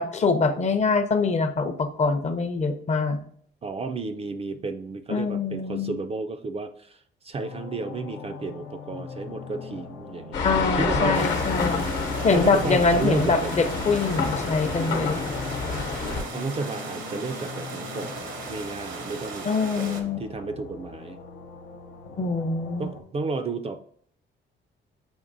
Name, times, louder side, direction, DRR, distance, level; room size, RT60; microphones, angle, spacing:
voice 1, 0.0-3.2 5.1-5.9 10.4-11.9 12.2-15.2 19.4-20.2 22.2-22.9, left 4 dB, 35° left, 8 dB, 0.5 m, -24 dB
voice 2, 3.6-7.0 7.2-11.4 12.3-13.7 16.0-19.5 19.7-21.2 22.8-23.8, right 3 dB, 30° right, 8 dB, 0.3 m, -32 dB
sound 1, 7.3-23.0, left 4 dB, 90° left, 0.6 m, -40 dB
sound 2, 10.3-16.2, left 5 dB, 65° left, 0.9 m, -28 dB
sound 3, 11.1-20.0, right 4 dB, 75° right, 0.8 m, -37 dB
7.0 x 2.9 x 2.6 m, 0.62 s
cardioid pair, 90°, 20 cm